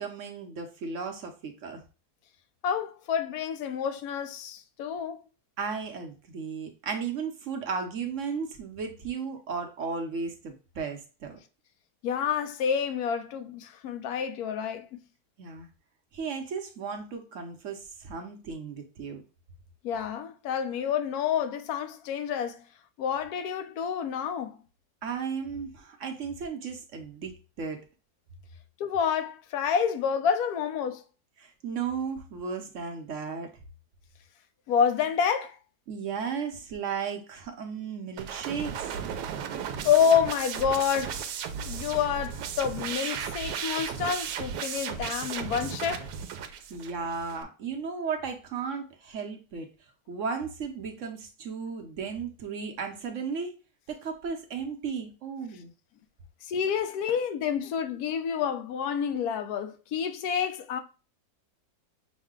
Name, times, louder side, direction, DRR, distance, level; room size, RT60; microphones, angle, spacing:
voice 1, 0.0-1.8 5.6-11.4 15.4-15.7 16.1-19.2 25.0-27.8 31.4-33.5 35.9-39.0 46.4-49.7 50.1-53.5 53.9-55.7, right 5 dB, 60° right, 1.0 m, -35 dB
voice 2, 2.6-5.2 12.0-15.0 19.8-22.6 23.0-24.6 28.8-31.0 34.7-35.6 39.8-41.2 41.6-46.1 56.4-60.8, left 7 dB, 70° left, 1.1 m, -28 dB
sound 1, 38.2-47.4, right 7 dB, 85° right, 1.2 m, -35 dB
6.2 x 2.2 x 3.6 m
omnidirectional pair, 1.7 m